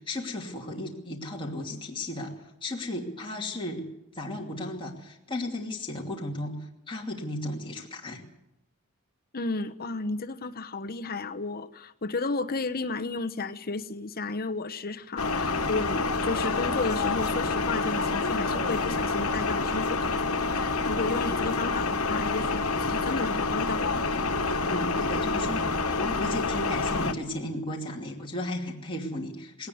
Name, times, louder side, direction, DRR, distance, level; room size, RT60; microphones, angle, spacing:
voice 1, 0.0-3.8 4.1-8.2 24.7-29.7, left 1 dB, 25° left, -1 dB, 2.7 m, -35 dB
voice 2, 9.3-24.0, left 3 dB, 45° left, 9 dB, 1.0 m, -33 dB
sound 1, 15.2-27.1, left 3 dB, 75° left, 1.7 m, -28 dB
19.5 x 18.0 x 8.0 m, 0.88 s
head